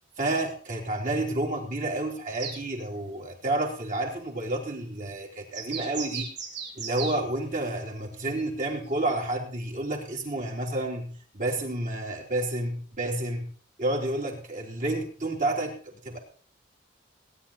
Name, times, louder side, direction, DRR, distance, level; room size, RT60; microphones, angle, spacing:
voice 1, 0.2-6.3 6.8-13.5 13.8-16.2, right 2 dB, 45° right, 0 dB, 3.8 m, -30 dB
sound 1, 2.3-2.6 5.5-7.2 8.4-8.5 9.1-9.2, right 6 dB, 70° right, 3.7 m, -36 dB
18.0 x 10.5 x 4.3 m, 0.42 s
head